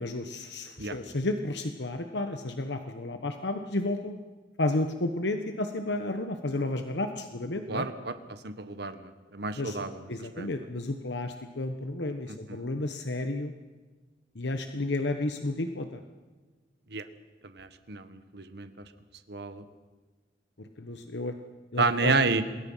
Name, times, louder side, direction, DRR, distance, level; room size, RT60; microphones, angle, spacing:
voice 1, 0.0-4.2 4.6-7.9 9.6-9.8 10.1-13.5 14.3-16.0 20.8-21.3 21.7-22.1, left 2 dB, 70° left, 6 dB, 1.2 m, -32 dB
voice 2, 7.7-8.2 8.4-10.1 10.4-10.5 12.5-12.6 16.9-17.0 17.4-18.7 19.3-19.6 21.8-22.4, right 3 dB, 65° right, 10 dB, 1.5 m, -30 dB
27.5 x 21.0 x 5.7 m, 1.3 s
head